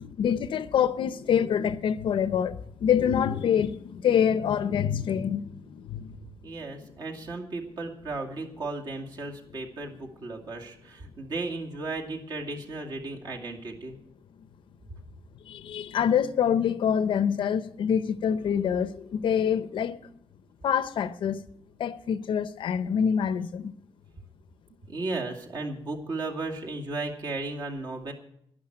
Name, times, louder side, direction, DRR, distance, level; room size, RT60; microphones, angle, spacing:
voice 1, 0.0-6.2 15.5-20.0 20.6-21.4 21.8-23.7, left 8 dB, 60° left, 0.7 m, -26 dB
voice 2, 6.4-14.0 24.9-28.1, right 3 dB, 50° right, 2.4 m, -35 dB
11.5 x 11.0 x 7.7 m
wide cardioid pair, 170°, 9 cm